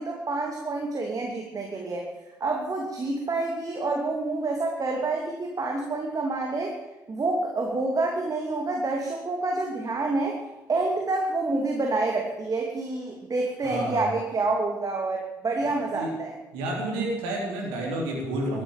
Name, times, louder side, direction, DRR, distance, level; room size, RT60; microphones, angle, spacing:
voice 1, 0.0-2.1 2.4-6.7 7.1-10.4 10.7-16.3, right 3 dB, 40° right, 1 dB, 2.8 m, -28 dB
voice 2, 13.6-14.1 15.6-16.1 16.5-18.6, right 1 dB, 75° right, -1 dB, 3.6 m, -30 dB
13.5 x 11.5 x 7.4 m, 1.1 s
hypercardioid pair, 45°, 9 cm